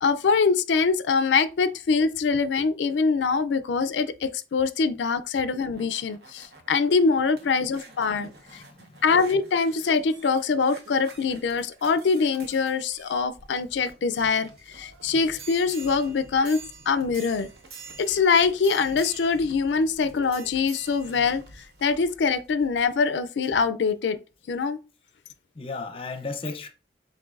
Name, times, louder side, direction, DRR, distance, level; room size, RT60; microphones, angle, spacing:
voice 1, 0.0-8.3 9.0-16.6 16.9-17.5 18.0-21.4 21.8-24.2 24.5-24.8, left 5 dB, 90° left, 0.4 m, -23 dB
sound 1, 5.4-23.1 23.6-23.7, right 4 dB, 65° right, 1.0 m, -47 dB
voice 2, 7.9-9.0 25.5-26.7, left 3 dB, 30° left, 0.5 m, -36 dB
7.7 x 2.6 x 2.5 m
head